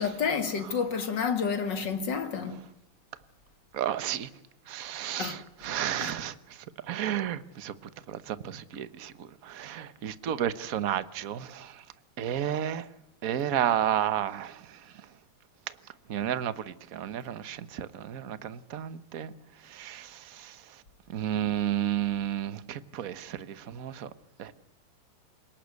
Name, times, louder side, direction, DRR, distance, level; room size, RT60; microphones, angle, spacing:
voice 1, 0.0-2.6 5.2-5.4 6.0-6.1, left 6 dB, 55° left, 2.6 m, -29 dB
voice 2, 3.7-4.3 4.7-6.3 6.9-7.7 8.1-11.7 12.2-12.8 13.2-14.6 16.1-19.3 19.7-20.5 21.1-24.1 24.4-24.5, right 10 dB, 50° right, 1.3 m, -32 dB
28.0 x 18.5 x 8.3 m
omnidirectional pair, 2.3 m